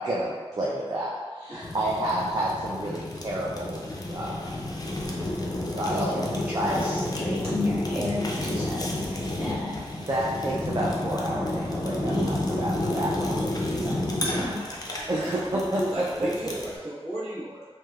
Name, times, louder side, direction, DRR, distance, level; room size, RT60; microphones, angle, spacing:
voice 1, 0.0-3.8 4.1-4.5 5.6-6.2 6.5-7.0 10.0-13.4 15.1-15.8, right 1 dB, 40° right, -5 dB, 0.4 m, -30 dB
Fire, 1.6-16.8, left 1 dB, 40° left, 0.5 m, -31 dB
voice 2, 5.9-8.8 9.4-9.8 12.0-12.3 13.3-13.5 13.8-14.6, left 1 dB, 15° right, -12 dB, 1.4 m, -32 dB
voice 3, 14.2-17.7, right 1 dB, 75° right, -11 dB, 1.2 m, -35 dB
3.2 x 2.7 x 2.3 m, 1.5 s
wide cardioid pair, 75°, 10 cm